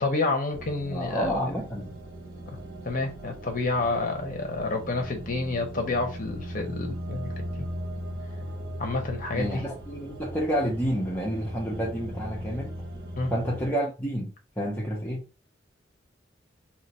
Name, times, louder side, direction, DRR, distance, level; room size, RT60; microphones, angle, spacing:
voice 1, 0.0-1.5 2.5-2.6 2.8-7.3 8.8-9.6 13.2-13.3, left 3 dB, 45° left, 0.8 m, -29 dB
sound 1, 0.5-13.7, right 1 dB, 75° right, 0.9 m, -38 dB
voice 2, 0.9-1.9 9.3-12.7 13.3-15.2, equal, 10° left, 0.6 m, -29 dB
3.0 x 2.4 x 4.1 m
head